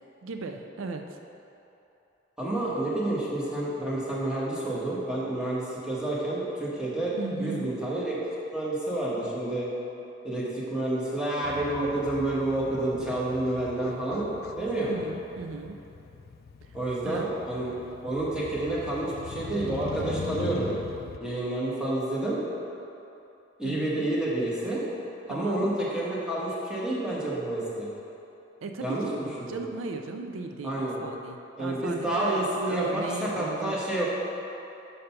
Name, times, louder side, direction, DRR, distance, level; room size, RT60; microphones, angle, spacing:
voice 1, 0.2-1.2 7.2-7.7 14.9-15.8 17.0-17.3 23.6-24.1 25.3-25.7 28.6-33.8, right 3 dB, 85° right, 5 dB, 0.4 m, -36 dB
voice 2, 2.4-7.1 7.4-8.1 8.5-9.7 10.2-14.3 14.5-14.9 16.7-17.7 18.0-20.7 21.2-22.4 23.6-24.8 25.3-27.9 28.8-29.6 30.6-31.0 31.6-34.1, right 1 dB, 5° right, -7 dB, 1.3 m, -29 dB
Motorcycle, 11.4-21.2, left 4 dB, 50° left, 0.3 m, -41 dB
5.6 x 5.1 x 5.7 m, 2.9 s
head